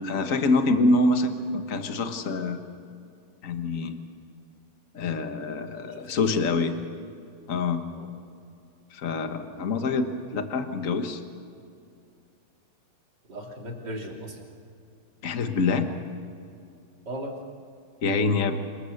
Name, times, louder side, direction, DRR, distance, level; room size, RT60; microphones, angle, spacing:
voice 1, 0.0-2.6 3.4-4.0 4.9-6.8 7.5-7.8 8.9-10.1 10.3-11.2 15.2-15.9 18.0-18.6, left 3 dB, 45° left, 7 dB, 1.6 m, -25 dB
voice 2, 5.9-6.5 7.9-8.1 13.3-14.5 17.1-17.4, equal, 55° right, 0 dB, 3.8 m, -37 dB
27.0 x 21.0 x 6.6 m, 2.4 s
omnidirectional pair, 2.3 m